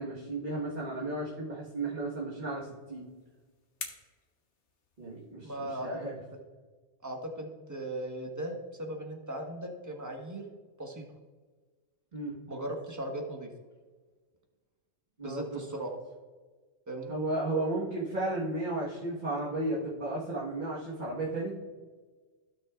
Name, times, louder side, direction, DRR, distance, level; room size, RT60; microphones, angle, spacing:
voice 1, 0.0-3.1 5.0-6.1 12.1-12.4 15.2-15.8 17.1-21.5, right 2 dB, 40° right, -6 dB, 1.6 m, -34 dB
sound 1, 2.7-5.4, left 4 dB, 65° left, 1.5 m, -48 dB
voice 2, 5.4-5.9 7.0-10.4 10.8-11.0 12.5-13.5 15.2-15.9 16.9-17.1, right 1 dB, 15° right, 1 dB, 1.2 m, -38 dB
15.5 x 6.2 x 2.4 m, 1.4 s
omnidirectional pair, 1.3 m